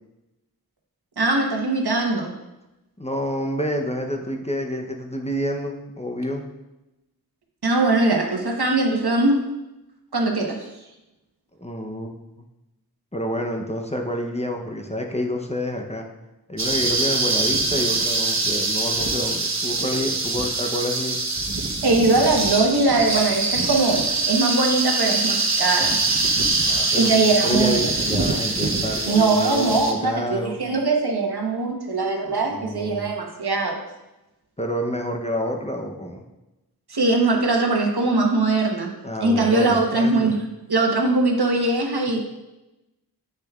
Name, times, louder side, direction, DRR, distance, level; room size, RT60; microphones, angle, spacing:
voice 1, 1.2-2.3 7.6-9.4 10.1-10.6 21.8-26.0 26.9-27.7 29.1-33.8 36.9-38.9 39.2-40.4 40.7-42.2, right 3 dB, 80° right, 1 dB, 1.1 m, -21 dB
voice 2, 3.0-6.4 11.6-12.1 13.1-16.1 16.5-21.2 26.6-27.1 27.4-30.6 32.2-33.1 34.6-36.2 39.0-40.4, equal, 15° left, 2 dB, 0.7 m, -28 dB
sound 1, 16.6-29.9, right 3 dB, 45° right, 0.9 m, -24 dB
7.9 x 6.6 x 2.4 m, 0.97 s
wide cardioid pair, 60°, 38 cm